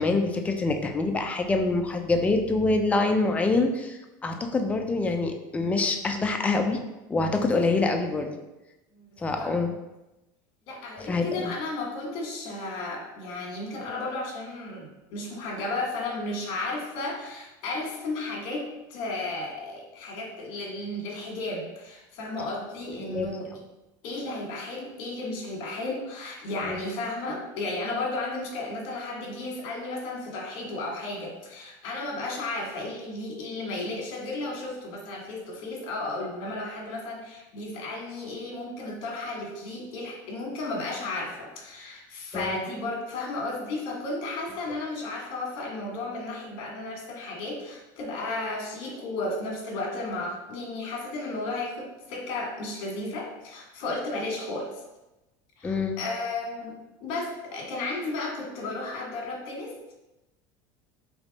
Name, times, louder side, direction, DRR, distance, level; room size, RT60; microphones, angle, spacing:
voice 1, 0.0-6.8 7.1-8.3 9.2-9.7 11.0-11.5 23.1-23.3 26.6-26.8 42.3-42.6 55.6-56.0, left 3 dB, 15° left, 4 dB, 0.3 m, -25 dB
voice 2, 8.9-9.5 10.7-23.5 24.0-54.8 55.6-59.7, left 2 dB, 55° left, -1 dB, 1.4 m, -34 dB
3.4 x 3.1 x 3.9 m, 0.98 s
cardioid pair, 150°, 10 cm